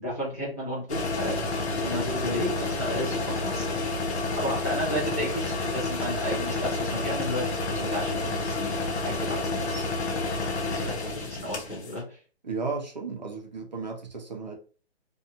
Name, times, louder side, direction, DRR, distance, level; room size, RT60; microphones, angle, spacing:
voice 1, 0.0-3.7 4.3-10.1 10.7-12.2, equal, 15° left, 0.5 m, -33 dB
sound 1, 0.9-12.0, left 3 dB, 90° left, 0.8 m, -30 dB
voice 2, 12.4-14.5, right 4 dB, 45° right, 0.5 m, -34 dB
2.6 x 2.3 x 2.7 m
hypercardioid pair, 175°, 32 cm